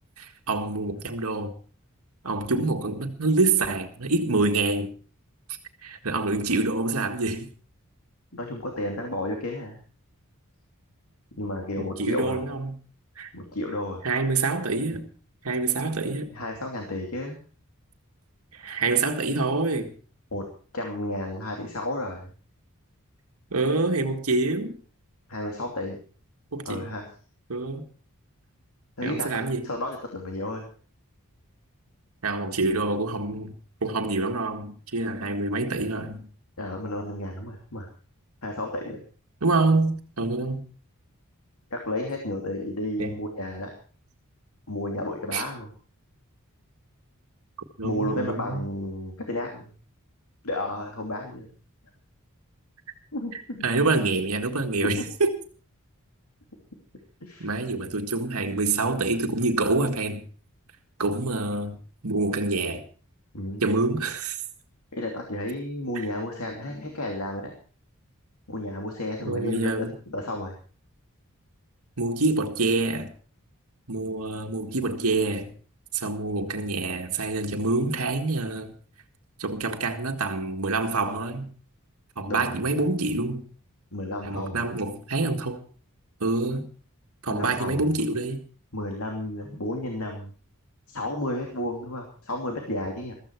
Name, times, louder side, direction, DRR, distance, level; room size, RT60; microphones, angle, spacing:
voice 1, 0.2-1.5 2.2-4.9 5.8-7.5 11.8-12.8 13.2-13.3 14.0-15.1 15.4-16.3 18.5-19.9 23.5-24.8 26.5-26.9 27.5-27.9 29.0-29.6 32.2-33.6 33.8-36.3 39.4-40.6 43.0-43.2 45.3-45.4 47.8-48.7 53.3-55.4 57.4-60.3 61.0-61.8 62.0-62.8 63.6-64.4 69.2-69.9 72.0-73.1 73.9-75.6 75.9-78.7 79.4-81.5 82.2-83.5 84.2-85.6 86.2-86.7 87.2-88.4, right 3 dB, 80° right, 1.8 m, -26 dB
voice 2, 8.3-9.8 11.3-12.4 13.3-14.0 16.3-17.4 20.3-20.4 20.7-22.3 25.3-26.0 26.6-27.0 29.0-29.3 29.6-30.7 36.6-37.9 38.4-39.0 41.7-43.7 44.7-45.7 47.8-49.7 50.4-51.5 53.1-53.6 57.2-57.5 63.3-63.6 64.9-67.5 68.5-70.6 82.3-82.6 83.9-84.7 87.3-87.9 88.7-90.3 90.9-93.1, left 1 dB, 75° left, 2.8 m, -32 dB
15.0 x 14.0 x 4.6 m
head